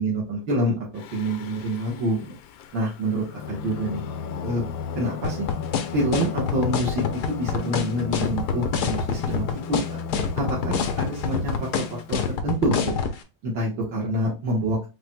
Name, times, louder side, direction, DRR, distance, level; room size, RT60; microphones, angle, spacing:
voice 1, 0.0-2.3 2.7-4.0 4.4-4.6 4.9-5.5 5.9-10.0 10.4-12.9 13.4-14.9, right 1 dB, 75° right, -4 dB, 2.1 m, -27 dB
Singing, 1.0-12.3, left 6 dB, 85° left, 1.4 m, -35 dB
sound 1, 5.2-13.1, left 6 dB, 65° left, 1.2 m, -26 dB
4.9 x 4.4 x 2.2 m, 0.29 s
omnidirectional pair, 2.1 m